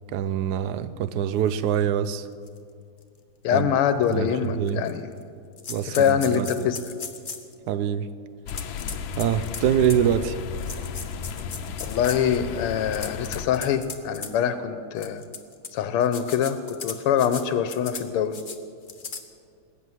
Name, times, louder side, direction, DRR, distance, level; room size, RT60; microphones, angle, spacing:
voice 1, 0.1-2.3 3.5-3.7 4.1-4.8 5.7-6.7 7.7-8.1 9.2-10.4, right 9 dB, 75° right, 0.9 m, -25 dB
sound 1, 1.7-1.8 2.5-2.6 3.0-3.1 4.0-4.1 4.7-5.2 5.6-7.5 8.5-10.1 10.6-12.4 12.8-14.3 15.0-15.7 16.0-17.4 17.7-18.0 18.3-18.6 18.9-19.2, left 5 dB, 40° left, 0.7 m, -37 dB
voice 2, 3.4-5.1 5.9-6.8 11.8-15.2 15.7-18.4, left 9 dB, 90° left, 1.7 m, -24 dB
sound 2, 8.5-13.5, left 7 dB, 70° left, 1.5 m, -34 dB
20.0 x 9.2 x 7.8 m
omnidirectional pair, 2.4 m